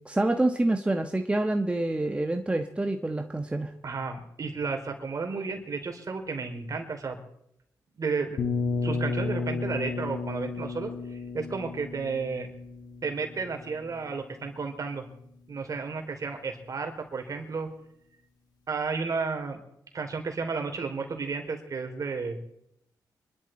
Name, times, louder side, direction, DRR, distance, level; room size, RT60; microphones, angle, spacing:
voice 1, 0.0-3.7, right 2 dB, 15° right, 5 dB, 1.3 m, -27 dB
voice 2, 3.8-7.2 8.0-8.4 8.8-12.5 13.0-15.0 15.5-17.7 18.7-19.6 19.9-22.4, right 4 dB, 50° right, 4 dB, 3.4 m, -32 dB
sound 1, 8.4-14.1, left 4 dB, 65° left, 1.8 m, -33 dB
25.0 x 12.0 x 4.4 m, 0.76 s
cardioid pair, 70°, 7 cm